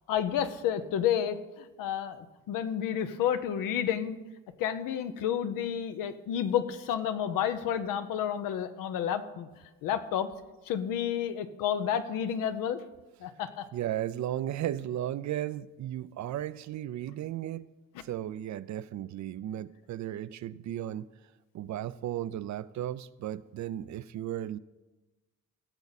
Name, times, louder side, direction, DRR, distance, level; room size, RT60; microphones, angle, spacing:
voice 1, 0.1-4.2 4.6-9.5 9.8-10.3 10.7-12.8 13.2-13.7, left 9 dB, 85° left, 0.8 m, -30 dB
voice 2, 13.7-17.7 18.0-21.1 21.5-24.6, right 12 dB, 60° right, 0.5 m, -35 dB
18.0 x 7.0 x 4.1 m
cardioid pair, 80°, 32 cm